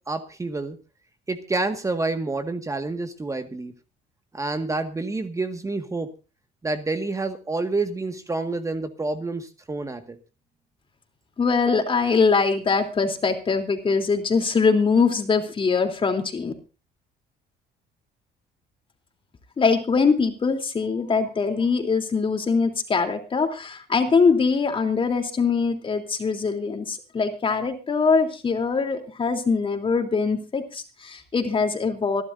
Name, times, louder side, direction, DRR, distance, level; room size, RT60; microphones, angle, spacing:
voice 1, 0.1-0.8 1.3-3.7 4.3-6.1 6.6-10.2, right 3 dB, 20° right, 7 dB, 1.7 m, -28 dB
voice 2, 11.4-16.5 19.6-32.2, left 5 dB, 30° left, 6 dB, 3.2 m, -22 dB
26.5 x 12.0 x 2.6 m, 0.33 s
cardioid pair, 110°, 17 cm